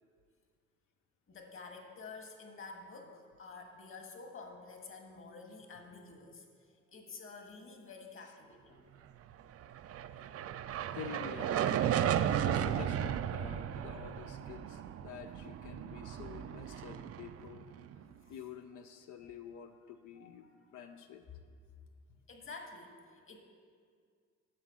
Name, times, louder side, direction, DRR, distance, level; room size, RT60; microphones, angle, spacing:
voice 1, 1.3-8.9 15.3-15.4 18.0-18.3 19.2-19.7 20.1-20.9 22.3-23.4, left 4 dB, 45° left, 2 dB, 1.5 m, -50 dB
sound 1, 9.6-18.0, right 10 dB, 50° right, 0.4 m, -35 dB
voice 2, 10.9-11.7 12.4-17.7 18.3-20.5 20.7-21.2, left 8 dB, 80° left, 6 dB, 0.6 m, -48 dB
7.7 x 6.0 x 7.5 m, 2.1 s
cardioid pair, 90°, 30 cm